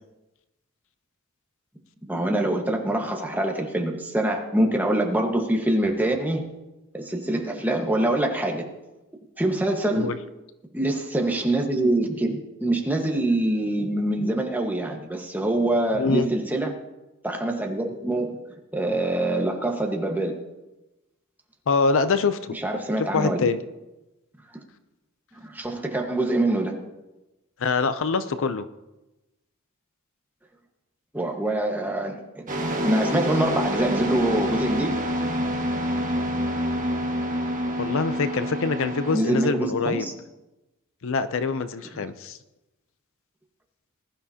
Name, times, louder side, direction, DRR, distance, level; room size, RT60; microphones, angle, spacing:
voice 1, 2.0-6.4 6.9-8.7 9.4-10.1 10.7-16.7 17.2-18.4 18.7-20.4 22.6-23.5 25.4-26.8 31.1-32.5 32.8-35.0 39.1-40.1, right 1 dB, 10° right, 1 dB, 1.4 m, -25 dB
voice 2, 16.0-16.3 21.7-22.6 23.0-23.6 27.6-28.6 37.8-40.1 41.0-42.4, left 4 dB, 65° left, 12 dB, 0.6 m, -24 dB
sound 1, 32.5-39.2, equal, 40° right, 1.5 m, -27 dB
20.0 x 11.5 x 2.8 m, 1.0 s
head